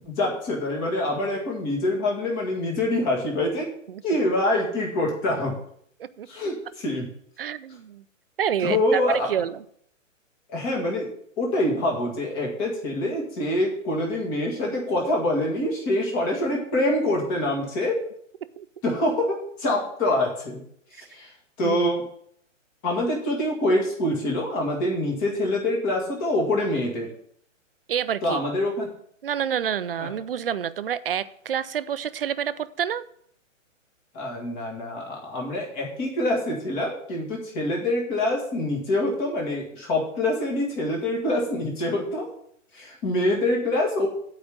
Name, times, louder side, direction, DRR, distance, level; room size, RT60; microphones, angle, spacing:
voice 1, 0.1-3.7 4.0-5.6 6.3-7.1 8.6-9.3 10.5-11.1 11.4-18.0 18.8-20.6 21.0-21.3 21.6-22.0 22.8-27.1 28.2-28.9 30.0-30.1 34.1-42.3 42.7-44.1, left 1 dB, 20° left, -1 dB, 1.8 m, -25 dB
voice 2, 7.4-8.0 8.4-9.6 18.6-18.7 21.0-21.1 21.6-21.9 27.9-28.4 29.2-33.0, right 9 dB, 50° right, 15 dB, 0.5 m, -28 dB
8.7 x 5.0 x 7.2 m, 0.66 s
hypercardioid pair, 170°, 39 cm